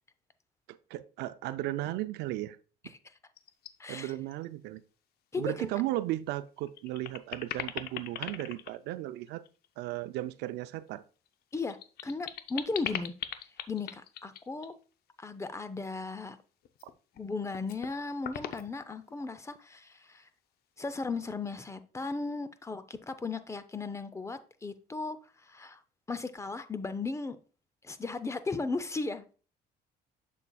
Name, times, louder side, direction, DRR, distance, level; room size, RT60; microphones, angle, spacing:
voice 1, 0.7-2.6 3.9-4.8 5.4-9.4 9.8-11.0, right 15 dB, 85° right, 0.5 m, -35 dB
sound 1, 3.4-3.7 4.1-4.4 4.8-4.9 6.1-6.2 6.6-9.7 11.3-14.7 16.6-17.2 17.5-17.9 18.2-19.3, left 10 dB, 70° left, 0.6 m, -40 dB
voice 2, 3.8-4.1 5.3-5.8 11.5-11.8 12.0-13.1 13.7-14.7 15.2-16.4 17.2-20.3 20.8-25.8 26.1-27.4 27.8-29.3, left 3 dB, 15° left, 0.5 m, -36 dB
7.3 x 6.7 x 2.3 m
cardioid pair, 110°, 17 cm